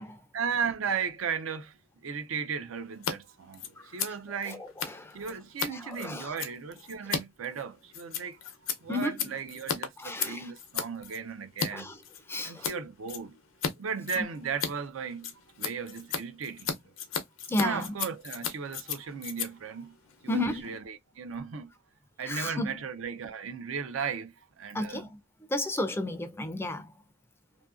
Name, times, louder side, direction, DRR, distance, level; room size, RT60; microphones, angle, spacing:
voice 1, 0.3-4.7 5.1-11.9 12.4-13.4 13.8-15.3 15.6-16.8 17.6-19.9 20.2-21.7 22.2-25.1, right 6 dB, 80° right, 0.5 m, -36 dB
Scissors, 2.9-3.1 3.4-11.7 12.0-12.8 13.1-13.7 14.0-20.8, left 7 dB, 80° left, 0.6 m, -36 dB
voice 2, 4.3-5.2 5.7-6.3 8.9-9.3 10.0-10.5 11.7-12.0 12.3-12.7 14.2-14.3 17.5-17.9 20.3-20.7 22.3-22.8 24.7-25.2 25.5-26.9, left 1 dB, 10° left, 0.4 m, -33 dB
2.7 x 2.6 x 2.4 m
head